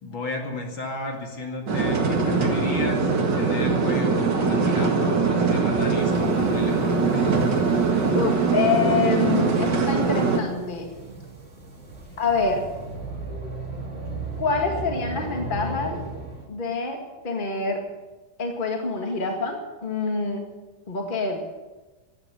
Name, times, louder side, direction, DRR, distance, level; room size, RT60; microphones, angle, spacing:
voice 1, 0.0-3.1 3.3-7.4 7.9-8.2, left 2 dB, 40° left, 1 dB, 2.2 m, -34 dB
sound 1, 1.7-10.4, right 4 dB, 50° right, 1.4 m, -22 dB
sound 2, 6.0-16.5, right 2 dB, 20° right, 1.9 m, -37 dB
voice 2, 8.1-10.9 12.2-12.6 14.4-16.0 16.5-17.0 17.2-17.8 18.4-20.5 20.9-21.4, left 4 dB, 85° left, 2 dB, 0.4 m, -26 dB
13.5 x 9.4 x 9.7 m, 1.2 s
omnidirectional pair, 4.6 m